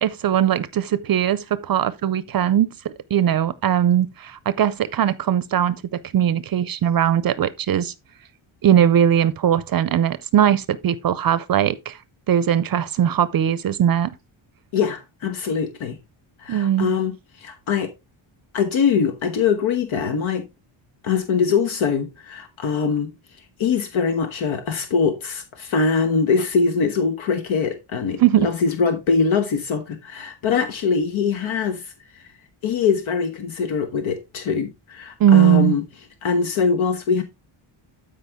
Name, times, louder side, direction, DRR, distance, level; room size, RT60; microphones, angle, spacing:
voice 1, 0.0-7.9 8.6-12.0 12.3-14.1 16.5-17.0 28.2-28.5 35.2-35.8, right 10 dB, 50° right, 0.5 m, -19 dB
voice 2, 14.7-16.0 16.4-17.9 18.5-20.5 21.0-23.1 23.6-31.9 32.6-35.8 36.2-37.2, left 5 dB, 75° left, 1.3 m, -22 dB
12.5 x 5.1 x 3.5 m
wide cardioid pair, 155°, 48 cm